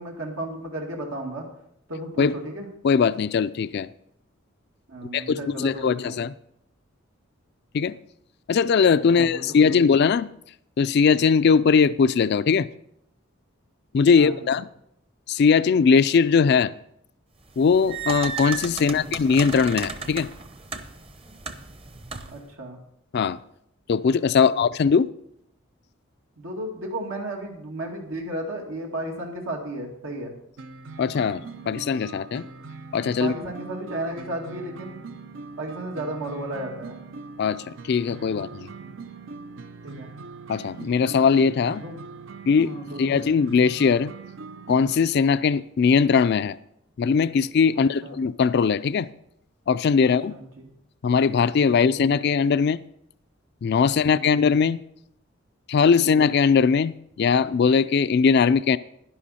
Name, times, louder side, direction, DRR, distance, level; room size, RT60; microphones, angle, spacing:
voice 1, 0.0-1.5 1.9-2.7 4.9-6.2 9.1-9.8 14.1-14.5 18.8-19.1 22.3-22.8 24.4-24.6 26.4-30.3 33.2-35.2 35.6-37.0 38.8-38.9 39.8-40.1 41.7-42.0 42.6-43.2 47.7-48.2 50.0-50.7 51.5-52.0 53.9-54.4 55.9-56.2, right 1 dB, 85° right, 2.3 m, -34 dB
voice 2, 2.8-3.9 5.1-6.3 7.7-7.9 8.5-10.3 10.8-12.7 13.9-14.7 15.3-16.7 17.6-20.3 23.1-23.4 23.9-25.1 31.0-32.5 32.9-33.3 37.4-38.7 40.5-41.8 42.5-42.7 43.0-44.1 44.7-46.6 47.0-49.1 49.7-50.4 51.0-52.8 53.6-54.8 55.7-58.8, left 5 dB, 55° left, 0.4 m, -20 dB
sound 1, 17.5-22.5, right 5 dB, 30° right, 0.8 m, -35 dB
sound 2, 30.6-45.0, right 4 dB, 70° right, 0.6 m, -41 dB
11.5 x 11.0 x 4.2 m
head